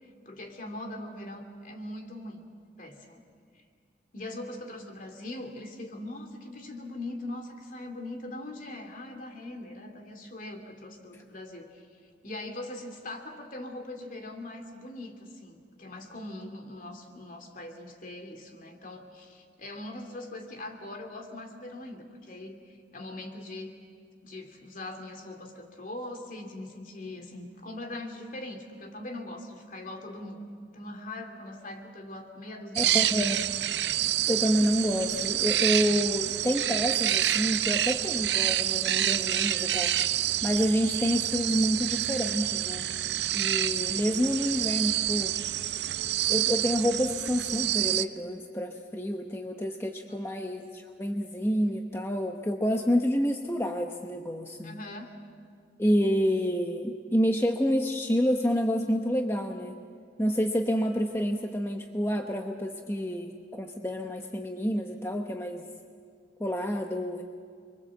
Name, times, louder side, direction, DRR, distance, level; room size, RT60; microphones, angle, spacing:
voice 1, 0.0-2.4 2.8-3.2 3.5-3.6 4.1-23.7 24.2-30.4 30.7-33.5 50.1-50.4 54.6-55.1, left 1 dB, 50° left, 4 dB, 2.8 m, -41 dB
voice 2, 32.8-33.5 34.3-40.0 40.4-42.9 43.3-45.4 46.3-54.8 55.8-59.8 60.2-65.7 66.4-67.2, equal, 15° left, 3 dB, 0.9 m, -28 dB
sound 1, 32.8-48.1, right 12 dB, 75° right, 0.7 m, -28 dB
29.5 x 23.5 x 7.7 m, 2.1 s
head